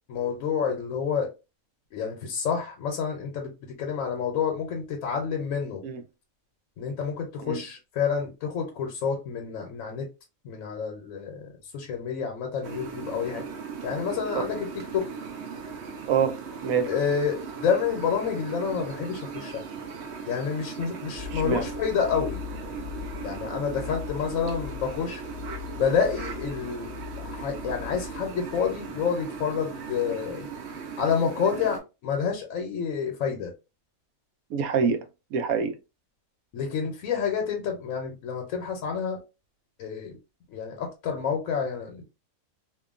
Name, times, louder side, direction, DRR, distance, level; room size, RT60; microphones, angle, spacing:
voice 1, 0.1-1.3 1.9-3.5 3.8-5.8 6.8-10.1 10.4-13.4 13.8-15.1 16.9-19.6 20.3-22.4 23.2-25.2 25.7-26.9 27.2-30.5 31.0-33.5 36.5-39.2 39.8-40.2 40.5-42.0, left 6 dB, 75° left, 1.0 m, -28 dB
sound 1, 12.6-31.8, right 6 dB, 60° right, 0.8 m, -38 dB
sound 2, 21.1-29.5, left 11 dB, 30° right, 1.3 m, -41 dB
voice 2, 21.3-21.7 34.5-35.0 35.3-35.8, right 6 dB, 85° right, 1.0 m, -25 dB
2.8 x 2.2 x 2.4 m
omnidirectional pair, 1.4 m